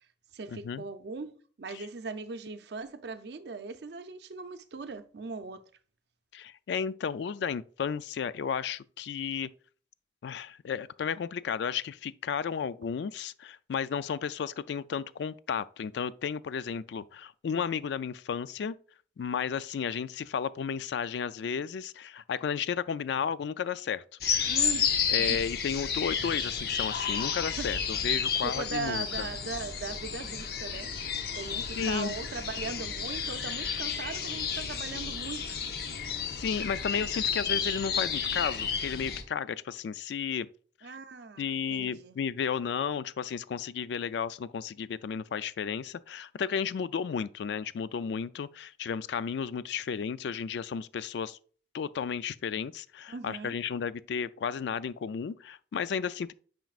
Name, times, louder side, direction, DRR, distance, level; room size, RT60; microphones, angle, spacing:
voice 1, 0.3-1.3 1.6-5.6 24.5-25.4 27.6-27.8 28.4-35.6 40.8-42.2 53.1-53.6, right 4 dB, 65° right, 0.5 m, -39 dB
voice 2, 6.3-9.5 10.2-18.8 19.2-24.0 24.4-24.5 25.1-29.3 31.8-32.1 35.9-40.5 40.8-40.9 41.4-51.4 51.7-56.3, left 7 dB, 75° left, 0.3 m, -33 dB
sound 1, 24.2-39.2, left 6 dB, 55° left, 0.7 m, -31 dB
9.1 x 5.1 x 2.4 m
head